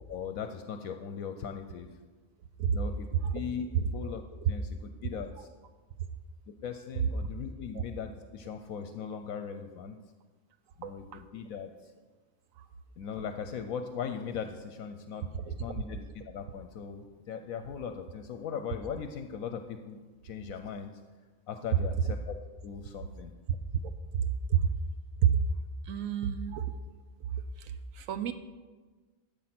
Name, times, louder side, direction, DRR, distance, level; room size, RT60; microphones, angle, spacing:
voice 1, 0.1-1.9 2.7-3.1 3.3-5.5 6.5-10.0 10.8-11.9 13.0-20.9 21.5-22.4 22.6-23.3, left 7 dB, 75° left, 7 dB, 1.0 m, -39 dB
voice 2, 25.9-26.7 27.6-28.3, right 10 dB, 70° right, 11 dB, 1.0 m, -29 dB
12.0 x 7.3 x 5.9 m, 1.4 s
omnidirectional pair, 1.5 m